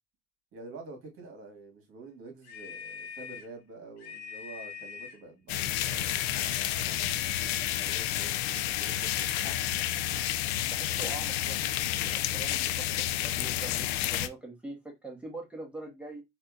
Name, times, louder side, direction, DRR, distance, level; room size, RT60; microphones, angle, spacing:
voice 1, 0.5-9.5 11.0-11.1, right 3 dB, 45° right, 1.7 m, -48 dB
sound 1, 2.4-3.5 4.0-5.2 5.5-6.5 7.1-8.3 8.8-10.2, left 7 dB, 60° left, 1.1 m, -43 dB
sound 2, 5.5-14.3, left 13 dB, 85° left, 0.5 m, -30 dB
voice 2, 10.7-16.2, right 2 dB, 5° right, 1.4 m, -43 dB
4.2 x 2.7 x 2.4 m
supercardioid pair, 105°, 31 cm